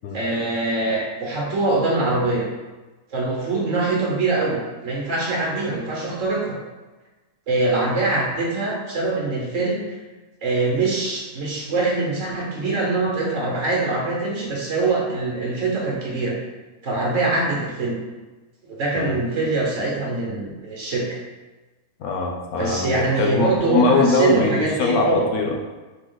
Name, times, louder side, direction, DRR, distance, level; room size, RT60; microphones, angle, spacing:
voice 1, 0.1-2.4 3.1-4.6 4.8-6.5 7.5-9.8 10.4-16.3 16.8-18.0 18.6-21.1 22.6-25.3, right 3 dB, 60° right, -3 dB, 1.5 m, -23 dB
voice 2, 22.0-25.6, left 3 dB, 85° left, 1 dB, 1.2 m, -22 dB
4.4 x 3.2 x 3.8 m, 1.2 s
omnidirectional pair, 1.5 m